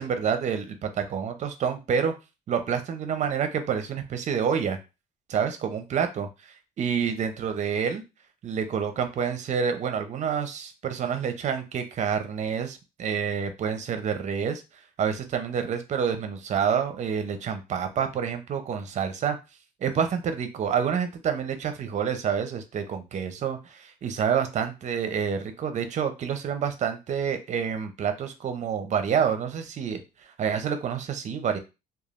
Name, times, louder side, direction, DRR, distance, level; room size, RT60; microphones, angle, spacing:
voice 1, 0.0-2.1 2.5-4.8 5.3-8.0 8.4-14.6 15.0-19.4 19.8-30.0 30.4-31.6, right 7 dB, 45° right, 8 dB, 0.6 m, -28 dB
3.1 x 2.3 x 2.5 m, 0.27 s
cardioid pair, 110°, 17 cm